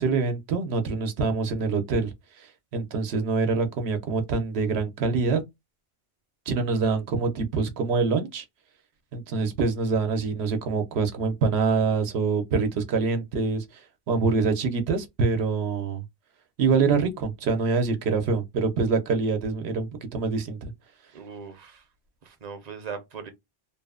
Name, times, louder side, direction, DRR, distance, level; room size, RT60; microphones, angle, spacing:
voice 1, 0.0-2.1 2.7-5.4 6.5-8.4 9.1-13.6 14.1-16.0 16.6-20.7, right 4 dB, 90° right, 0.9 m, -25 dB
voice 2, 21.1-21.9 22.2-23.3, right 6 dB, 50° right, 0.6 m, -39 dB
2.8 x 2.0 x 2.3 m
omnidirectional pair, 1.0 m